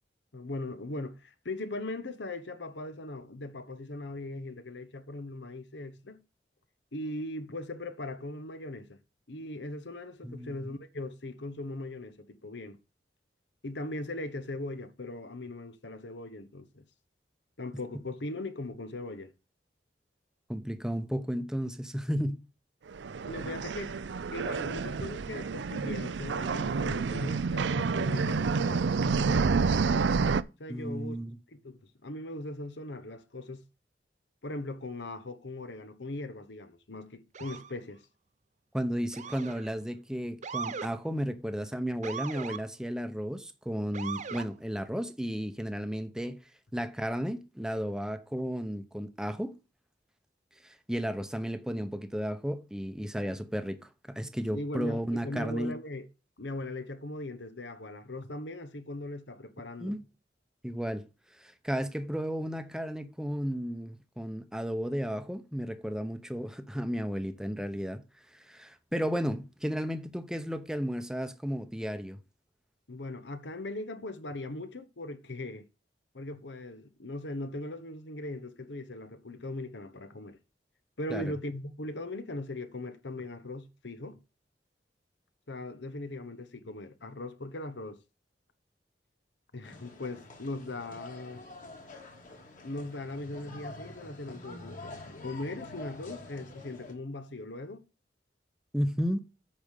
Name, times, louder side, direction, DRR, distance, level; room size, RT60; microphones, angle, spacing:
voice 1, 0.3-6.2 6.9-9.0 9.3-12.8 13.6-16.9 17.6-19.3 23.2-24.0 24.3-29.5 30.6-31.2 31.5-33.6 34.4-38.0 54.5-56.1 56.4-59.9 72.9-75.7 76.1-80.4 81.0-84.2 85.5-88.0 89.5-91.4 92.6-97.8, left 2 dB, 80° left, 1.1 m, -39 dB
voice 2, 10.2-10.7 20.5-22.4 30.7-31.4 38.7-46.4 46.7-49.5 50.6-55.7 59.8-60.0 60.6-61.1 61.4-68.0 68.3-72.2 81.1-81.3 98.7-99.2, equal, 5° right, 0.8 m, -33 dB
sound 1, 22.9-30.4, right 4 dB, 80° right, 0.5 m, -29 dB
Motor vehicle (road) / Siren, 37.3-37.7 39.1-39.7 40.4-40.9 42.0-42.6 43.9-44.5, right 6 dB, 45° right, 0.7 m, -38 dB
sound 2, 89.6-96.9, left 2 dB, 50° left, 2.6 m, -47 dB
8.7 x 5.2 x 6.6 m
head